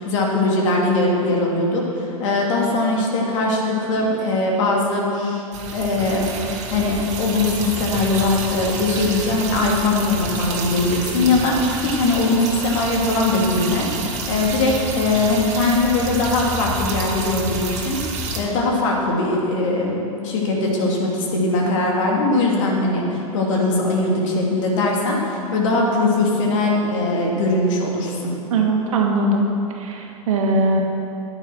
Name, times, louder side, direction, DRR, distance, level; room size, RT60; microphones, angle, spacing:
voice 1, 0.0-5.4 5.7-6.3 6.7-18.0 18.3-28.3, left 2 dB, 60° left, -2 dB, 2.7 m, -21 dB
sound 1, 5.5-18.4, right 3 dB, 40° right, 1.9 m, -29 dB
voice 2, 28.5-29.5 29.7-30.8, right 2 dB, 65° right, 1 dB, 1.8 m, -20 dB
10.0 x 9.0 x 6.2 m, 2.9 s
hypercardioid pair, 95°, 18 cm